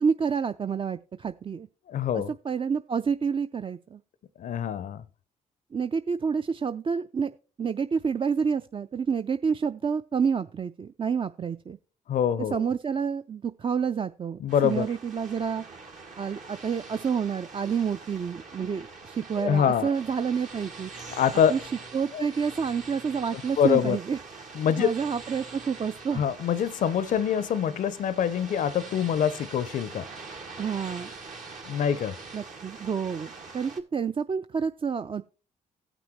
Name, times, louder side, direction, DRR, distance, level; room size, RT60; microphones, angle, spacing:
voice 1, 0.0-1.7 2.4-4.0 5.7-7.3 7.6-11.8 12.5-15.6 16.2-20.9 21.5-21.6 21.9-24.2 24.8-26.2 30.6-31.1 32.3-35.2, right 6 dB, 35° right, 0.4 m, -28 dB
voice 2, 1.9-2.3 4.4-5.0 12.1-12.6 14.4-14.9 19.4-19.9 21.2-21.6 22.1-22.2 23.6-24.0 24.6-24.9 26.1-30.1 31.7-32.1, left 8 dB, 65° left, 0.5 m, -25 dB
sound 1, 14.5-33.8, right 4 dB, 60° right, 1.9 m, -44 dB
16.5 x 6.1 x 3.0 m
supercardioid pair, 55°, 15 cm